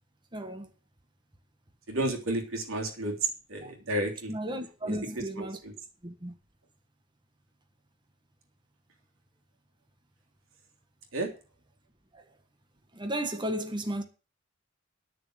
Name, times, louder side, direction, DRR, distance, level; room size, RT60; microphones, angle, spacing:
voice 1, 0.3-0.7 3.6-3.7 4.3-5.6 6.0-6.3 12.1-12.2 12.9-14.0, right 1 dB, 25° right, 1.4 m, -34 dB
voice 2, 1.9-4.3 4.8-4.9 5.4-5.7 11.1-11.3, right 2 dB, 85° right, 3.3 m, -32 dB
11.0 x 6.9 x 8.0 m
head